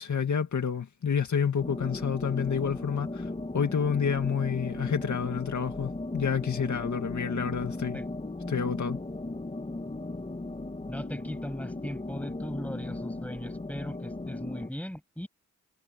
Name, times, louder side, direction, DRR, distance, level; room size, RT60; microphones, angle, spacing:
voice 1, 0.0-8.0 8.5-9.0, left 7 dB, 80° left, 2.0 m, -29 dB
sound 1, 1.6-14.7, left 2 dB, 25° left, 1.9 m, -36 dB
voice 2, 10.9-15.3, equal, 5° left, 6.9 m, -38 dB
wide cardioid pair, 115°, 29 cm